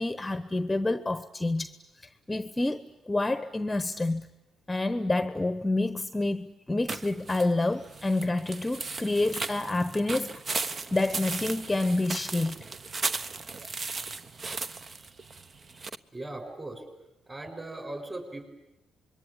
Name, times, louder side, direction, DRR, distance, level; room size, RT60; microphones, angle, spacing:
voice 1, 0.0-1.8 2.3-4.3 4.7-12.6, left 2 dB, 15° left, 1.0 m, -28 dB
sound 1, 6.9-16.0, right 4 dB, 40° right, 1.0 m, -36 dB
voice 2, 16.1-16.8 17.3-18.5, right 2 dB, 25° right, 7.3 m, -38 dB
26.5 x 22.5 x 9.9 m
cardioid pair, 90°, 0 cm